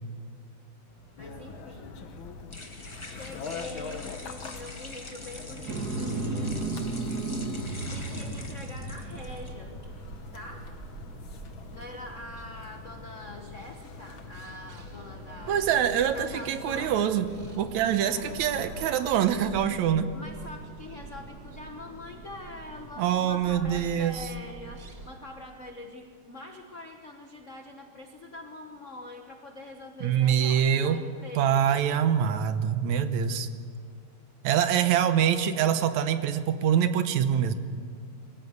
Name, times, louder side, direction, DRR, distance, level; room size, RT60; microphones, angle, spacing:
sound 1, 0.9-9.5, left 2 dB, 20° left, 0.7 m, -46 dB
voice 1, 1.2-2.0 3.1-6.7 7.9-9.9 10.3-10.8 11.7-15.6 16.1-16.9 18.2-18.3 20.1-32.0 34.8-35.2, left 1 dB, 75° left, 3 dB, 0.6 m, -44 dB
sound 2, 1.2-19.1, left 5 dB, 55° left, 1.5 m, -44 dB
sound 3, 5.7-25.2, right 2 dB, 40° right, 1.6 m, -39 dB
voice 2, 15.5-17.3 17.6-20.1 23.0-24.2 30.0-31.0 31.4-33.5 34.4-37.5, right 9 dB, 75° right, 10 dB, 2.2 m, -25 dB
22.5 x 15.0 x 8.0 m, 2.1 s
omnidirectional pair, 3.4 m